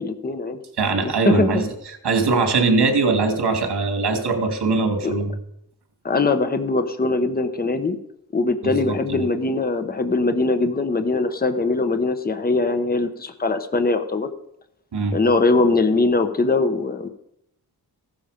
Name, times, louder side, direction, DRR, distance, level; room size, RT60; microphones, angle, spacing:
voice 1, 0.0-0.6 1.0-1.6 5.0-5.1 6.0-8.0 8.3-14.3 15.1-17.1, left 3 dB, 25° left, 8 dB, 1.0 m, -21 dB
voice 2, 0.8-1.7 2.0-5.3 8.6-9.3 14.9-15.2, right 4 dB, 80° right, 5 dB, 2.9 m, -21 dB
15.5 x 12.5 x 5.2 m, 0.76 s
wide cardioid pair, 165°, 39 cm